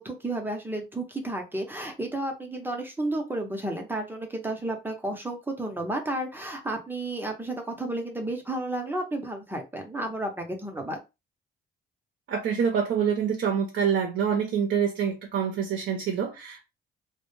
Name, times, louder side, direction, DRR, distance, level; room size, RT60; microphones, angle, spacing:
voice 1, 0.0-11.0, right 1 dB, 10° right, 0.7 m, -32 dB
voice 2, 12.3-16.6, right 7 dB, 65° right, 0.6 m, -26 dB
2.1 x 2.0 x 3.1 m
cardioid pair, 90°, 20 cm